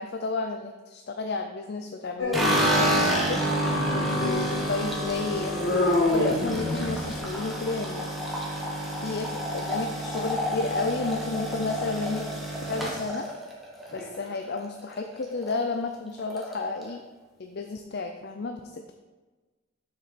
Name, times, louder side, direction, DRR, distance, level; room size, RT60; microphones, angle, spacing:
voice 1, 0.0-3.4 4.1-8.1 9.0-12.3 12.6-13.3 13.9-17.0 17.4-18.9, left 3 dB, 55° left, 5 dB, 0.5 m, -32 dB
Dog, 2.2-7.3, left 1 dB, 80° left, 1.9 m, -28 dB
sound 1, 2.3-14.6 14.9-15.5 15.8-15.9 16.2-16.9, equal, ahead, 1.3 m, -29 dB
7.5 x 6.8 x 4.4 m, 1.3 s
head